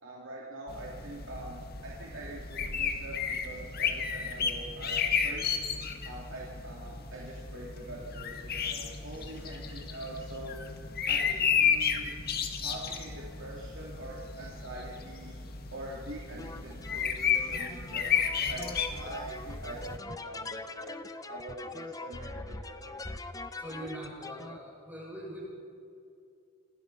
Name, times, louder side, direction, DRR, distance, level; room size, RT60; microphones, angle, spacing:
voice 1, 0.0-5.0 5.2-5.6 6.0-10.6 11.1-12.1 12.6-15.4 15.7-18.1 18.5-23.0, right 1 dB, 60° right, -4 dB, 3.1 m, -44 dB
sound 1, 0.7-20.0, left 7 dB, 45° left, 1.9 m, -33 dB
voice 2, 9.1-9.6 23.6-25.4, right 1 dB, 5° right, -4 dB, 7.4 m, -43 dB
sound 2, 16.4-24.6, left 2 dB, 15° left, 0.8 m, -42 dB
27.0 x 19.5 x 5.6 m, 2.5 s
head